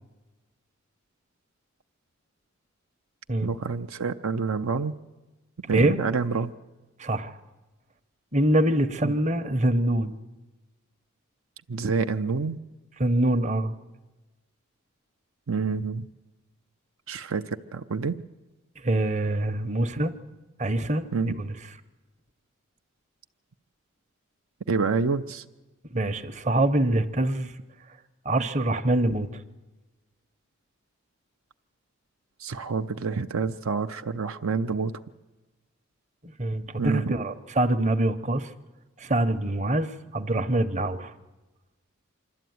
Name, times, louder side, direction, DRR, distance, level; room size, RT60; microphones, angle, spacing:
voice 1, 3.4-5.0 5.7-6.5 9.0-9.1 11.7-12.6 15.5-16.1 17.1-18.2 21.1-21.4 24.7-25.4 32.4-35.0 36.8-37.2, right 4 dB, 75° right, 8 dB, 0.6 m, -28 dB
voice 2, 7.0-7.4 8.3-10.2 13.0-13.7 18.8-20.1 20.6-21.0 21.4-21.5 25.9-27.5 28.2-29.4 36.4-38.5 39.0-41.1, right 1 dB, 35° right, 9 dB, 0.8 m, -24 dB
25.5 x 12.5 x 9.4 m, 1.2 s
head